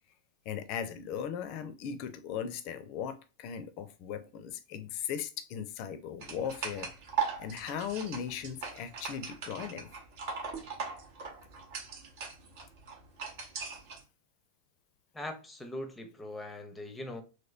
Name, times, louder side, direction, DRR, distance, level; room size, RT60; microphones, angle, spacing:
voice 1, 0.5-6.9 7.4-9.9, left 8 dB, 45° left, 0.4 m, -38 dB
sound 1, 6.2-14.0, right 6 dB, 50° right, 0.8 m, -39 dB
voice 2, 15.1-17.2, left 1 dB, 10° left, 0.7 m, -41 dB
3.1 x 2.9 x 2.4 m
figure-of-eight pair, 90°, 0 cm